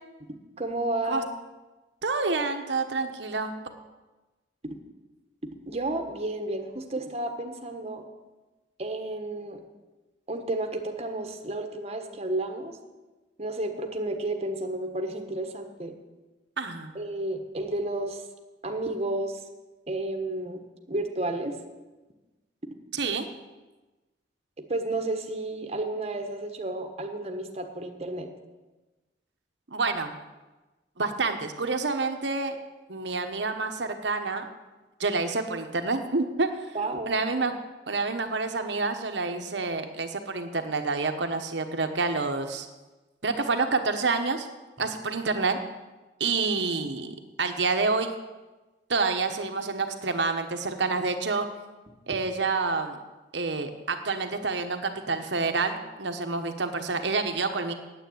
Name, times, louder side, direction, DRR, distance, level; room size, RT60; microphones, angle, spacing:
voice 1, 0.6-1.3 4.6-4.8 5.7-8.0 8.8-9.6 10.3-12.8 13.4-15.9 16.9-18.2 18.6-19.4 19.9-21.6 24.7-28.3 36.7-37.2, right 2 dB, 35° right, 5 dB, 1.3 m, -31 dB
voice 2, 2.0-3.6 16.6-16.9 22.9-23.3 29.7-30.1 31.0-32.6 32.9-34.5 35.0-36.8 37.1-37.5 37.9-42.7 43.2-44.5 44.8-45.6 46.2-48.1 48.9-51.5 52.1-53.0 53.3-57.7, right 4 dB, 70° right, 7 dB, 1.1 m, -28 dB
9.3 x 8.7 x 8.7 m, 1.1 s
head